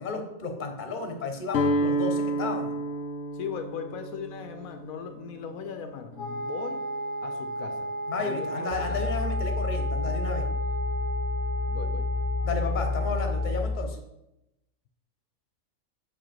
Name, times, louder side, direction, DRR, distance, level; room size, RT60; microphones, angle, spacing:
voice 1, 0.0-2.7 8.1-10.4 12.4-14.0, left 4 dB, 35° left, 4 dB, 1.0 m, -33 dB
Guitar, 1.5-7.5, equal, 60° left, 0.8 m, -31 dB
voice 2, 3.3-6.8 7.2-7.9 8.2-9.1 11.7-12.1, left 7 dB, 75° left, 7 dB, 1.0 m, -38 dB
Wind instrument woodwind instrument, 6.1-13.6, right 2 dB, 25° right, 1.1 m, -34 dB
sound 1, 8.7-13.8, left 3 dB, 15° left, 0.6 m, -29 dB
7.1 x 5.1 x 4.4 m, 0.89 s
omnidirectional pair, 1.5 m